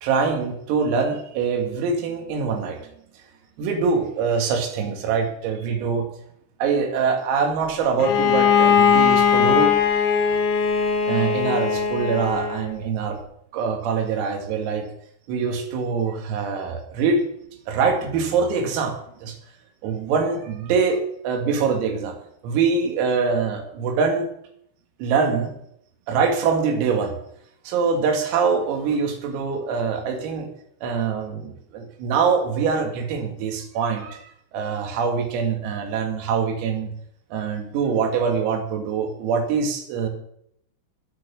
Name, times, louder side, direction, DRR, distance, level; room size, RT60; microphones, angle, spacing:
voice 1, 0.0-2.8 3.6-6.1 6.6-9.7 11.1-13.2 13.5-14.9 15.3-17.2 17.7-19.0 19.2-19.4 19.8-22.2 22.4-24.3 25.0-25.5 26.1-27.2 27.7-30.5 30.8-34.2 34.5-36.9 37.3-40.1, right 5 dB, 90° right, 3 dB, 4.9 m, -24 dB
Bowed string instrument, 8.0-12.7, left 7 dB, 85° left, 4.6 m, -19 dB
20.0 x 6.8 x 7.0 m, 0.72 s
omnidirectional pair, 6.0 m